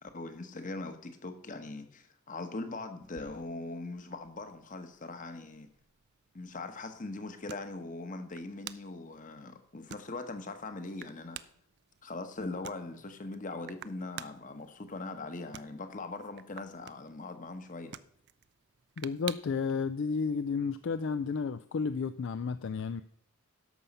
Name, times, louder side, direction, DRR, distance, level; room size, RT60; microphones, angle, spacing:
voice 1, 0.0-5.7 6.3-11.4 12.0-18.0, left 2 dB, 35° left, 8 dB, 1.2 m, -41 dB
sound 1, 3.0-19.7, right 10 dB, 50° right, 0.5 m, -51 dB
voice 2, 19.0-23.0, left 5 dB, 60° left, 12 dB, 0.4 m, -32 dB
11.0 x 7.1 x 5.4 m, 0.70 s
head